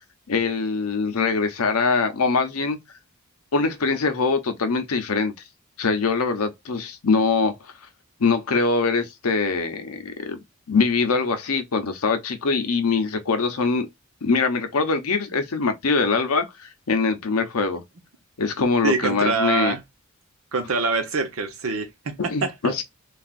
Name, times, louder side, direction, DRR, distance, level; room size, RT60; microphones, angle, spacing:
voice 1, 0.3-2.8 3.5-5.3 5.8-7.7 8.2-10.4 10.7-13.9 14.2-17.8 18.4-19.8 22.2-22.8, left 4 dB, 90° left, 0.7 m, -23 dB
voice 2, 18.8-19.8 20.5-22.1 22.4-22.7, right 4 dB, 75° right, 0.8 m, -24 dB
3.4 x 2.4 x 2.4 m
head